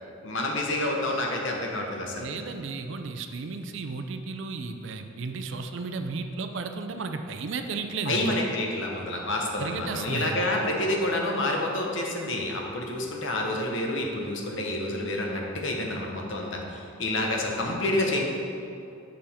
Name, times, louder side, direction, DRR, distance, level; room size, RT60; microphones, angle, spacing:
voice 1, 0.2-2.3 8.0-18.2, left 1 dB, 65° left, 0 dB, 1.0 m, -28 dB
voice 2, 2.2-8.3 9.6-10.5, right 4 dB, 65° right, 7 dB, 0.5 m, -34 dB
6.5 x 5.6 x 4.2 m, 2.7 s
head